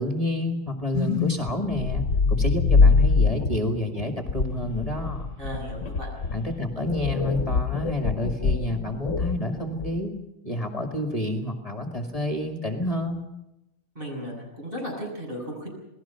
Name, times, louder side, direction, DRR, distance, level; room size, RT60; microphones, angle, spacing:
voice 1, 0.0-5.3 6.3-10.1 10.4-13.2, left 1 dB, 25° left, 3 dB, 2.1 m, -29 dB
sound 1, 0.9-10.1, left 4 dB, 65° left, 1.4 m, -24 dB
voice 2, 5.4-6.1 13.9-15.7, equal, 40° right, -1 dB, 8.4 m, -35 dB
28.5 x 19.5 x 5.8 m, 0.91 s
omnidirectional pair, 1.4 m